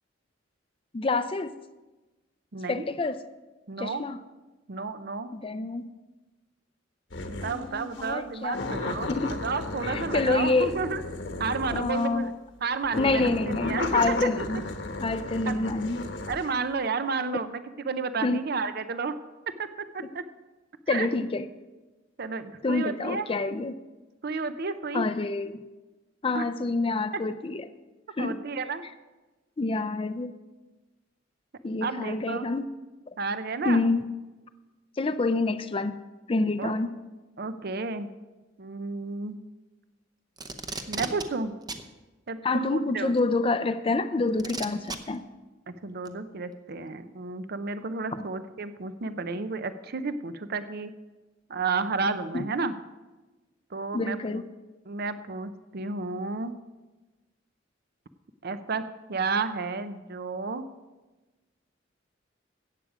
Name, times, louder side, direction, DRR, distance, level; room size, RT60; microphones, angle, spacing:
voice 1, 0.9-1.5 2.7-3.2 3.8-4.2 5.3-5.8 7.4-9.3 9.8-10.7 11.7-12.3 13.0-14.6 15.0-16.1 18.2-18.4 20.9-21.4 22.6-23.8 24.9-25.6 26.2-27.7 28.2-28.4 29.6-30.3 31.6-32.7 33.6-34.1 35.0-36.0 36.3-36.9 42.4-45.3 48.1-48.3 52.3-52.4 53.9-54.4, left 3 dB, 30° left, 10 dB, 0.5 m, -27 dB
voice 2, 2.5-2.9 3.7-4.0 4.7-5.3 7.3-11.0 11.4-12.3 12.6-14.1 15.5-15.6 16.3-19.1 19.6-19.7 19.9-20.2 20.9-21.1 22.2-23.2 24.2-25.1 26.3-26.4 28.2-28.8 31.8-32.5 33.2-33.9 36.6-36.7 37.4-38.1 38.6-39.4 40.9-41.5 42.3-43.1 45.7-50.9 51.5-52.7 53.7-54.4 54.9-56.6 58.4-60.6, right 4 dB, 55° right, 11 dB, 0.6 m, -31 dB
sound 1, 7.1-7.6 8.0-8.1 8.5-12.2 12.8-16.5, left 2 dB, 70° left, 1.1 m, -34 dB
Packing tape duct tape, 40.4-41.3 41.7-41.8 43.2-43.3 44.4-45.0 46.1-46.2, right 3 dB, 20° right, 0.7 m, -34 dB
14.0 x 8.7 x 4.9 m, 1.2 s
head